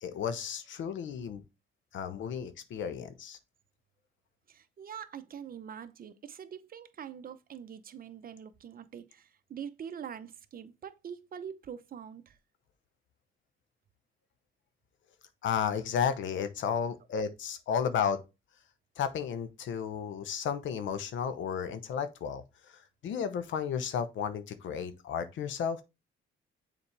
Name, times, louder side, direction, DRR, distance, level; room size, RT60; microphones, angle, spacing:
voice 1, 0.0-1.4 1.9-3.4 15.4-18.2 19.0-25.8, left 7 dB, 75° left, 0.9 m, -33 dB
voice 2, 4.5-12.4, right 8 dB, 45° right, 0.8 m, -44 dB
7.1 x 4.3 x 3.3 m
cardioid pair, 90°, 20 cm